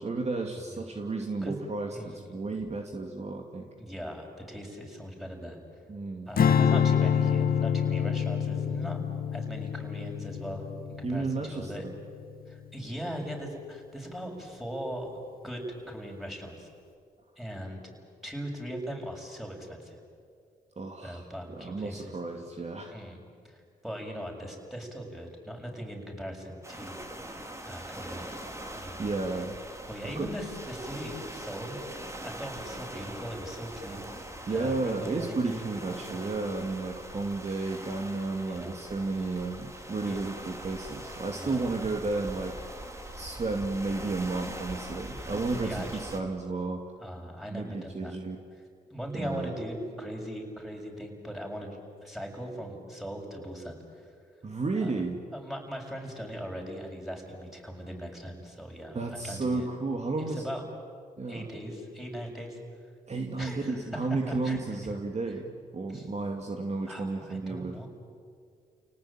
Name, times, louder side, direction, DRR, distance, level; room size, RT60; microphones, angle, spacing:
voice 1, 0.0-3.7 5.9-6.3 11.0-11.9 20.8-22.9 29.0-29.6 30.2-30.3 34.5-42.5 43.2-46.8 47.5-48.4 49.1-49.5 54.4-55.2 58.9-60.6 61.2-61.5 63.1-67.8, right 3 dB, 40° right, 3 dB, 2.4 m, -32 dB
voice 2, 1.9-2.4 3.8-5.6 6.3-9.0 9.3-11.9 12.5-15.1 15.4-16.7 17.4-17.8 18.2-20.0 21.0-22.2 22.9-23.2 23.4-27.0 27.3-28.3 28.7-29.1 29.9-31.8 32.2-34.0 34.5-35.7 36.1-36.3 38.4-38.8 40.1-40.3 41.3-41.7 45.2-45.9 47.0-48.2 48.9-54.1 54.8-54.9 55.3-59.7 60.3-60.6 61.3-62.6 63.4-63.8 64.3-64.9 65.9-66.1 66.9-67.9, equal, ahead, 1 dB, 7.2 m, -39 dB
Strum, 6.4-12.7, left 7 dB, 65° left, 1.9 m, -27 dB
sound 1, 26.6-46.2, right 1 dB, 15° right, 3.5 m, -42 dB
30.0 x 18.5 x 9.0 m, 2.2 s
supercardioid pair, 60°, 16 cm